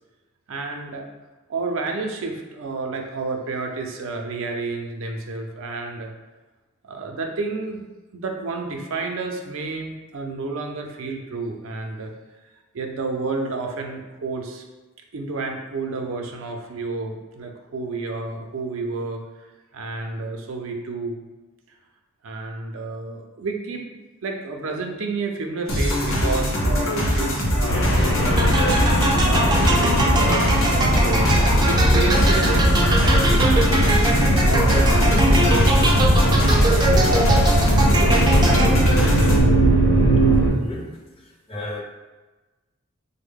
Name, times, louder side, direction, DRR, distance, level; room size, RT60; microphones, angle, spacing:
voice 1, 0.5-1.1 1.5-6.1 6.8-7.8 8.1-12.1 12.7-14.6 15.1-19.2 19.7-21.2 22.2-23.8 24.2-28.7 29.2-34.0 34.5-39.4, right 3 dB, 85° right, 3 dB, 0.5 m, -30 dB
sound 1, 25.7-39.4, equal, 90° left, 0.8 m, -22 dB
sound 2, 27.7-40.5, right 1 dB, 60° left, 0.9 m, -20 dB
sound 3, 28.4-39.0, right 2 dB, 20° right, 0.4 m, -23 dB
voice 2, 40.5-40.9 41.2-41.8, left 1 dB, 25° left, 0 dB, 0.5 m, -33 dB
3.4 x 2.1 x 3.5 m, 1.2 s
head